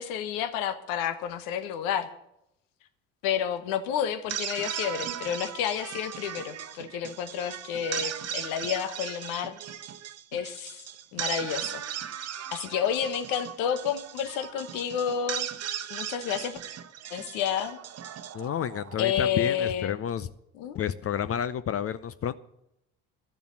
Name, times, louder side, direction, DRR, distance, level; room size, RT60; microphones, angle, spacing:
voice 1, 0.0-2.1 3.2-9.6 10.3-10.8 11.1-11.8 12.5-15.5 15.9-16.6 17.1-17.8 19.0-20.0 20.5-20.8, left 9 dB, 70° left, 10 dB, 1.3 m, -30 dB
sound 1, 4.1-19.4, right 9 dB, 45° right, 1.0 m, -37 dB
voice 2, 18.3-20.3 20.7-22.3, left 9 dB, 40° left, 15 dB, 0.7 m, -30 dB
12.5 x 7.0 x 9.7 m, 0.81 s
hypercardioid pair, 60°, 35 cm